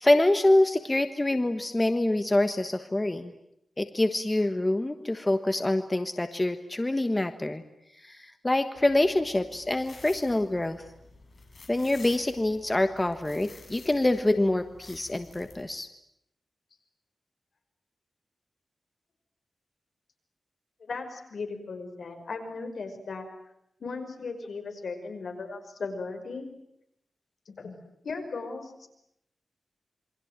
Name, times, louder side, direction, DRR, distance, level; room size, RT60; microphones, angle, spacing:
voice 1, 0.0-3.3 3.8-7.6 8.0-10.8 11.7-15.9, left 1 dB, 20° left, 9 dB, 1.3 m, -25 dB
sound 1, 8.8-15.6, left 3 dB, 45° left, 6.3 m, -51 dB
voice 2, 20.8-23.3 23.8-26.5 27.5-27.7 28.0-28.9, left 4 dB, 70° left, 6 dB, 5.5 m, -37 dB
28.0 x 24.0 x 9.0 m, 0.79 s
wide cardioid pair, 120°, 0 cm